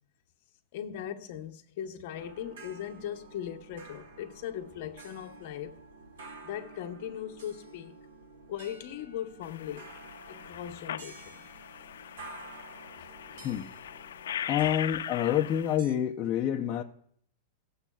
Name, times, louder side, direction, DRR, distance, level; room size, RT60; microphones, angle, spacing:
voice 1, 0.7-5.7 6.4-8.0 8.5-9.9 10.3-11.5, left 10 dB, 40° left, 0.9 m, -39 dB
sound 1, 2.1-15.9, right 3 dB, 80° right, 1.2 m, -50 dB
sound 2, 9.4-15.8, left 10 dB, 90° left, 0.3 m, -40 dB
voice 2, 14.5-16.8, left 10 dB, 20° left, 0.5 m, -28 dB
18.0 x 7.1 x 2.3 m
supercardioid pair, 180°, 0 cm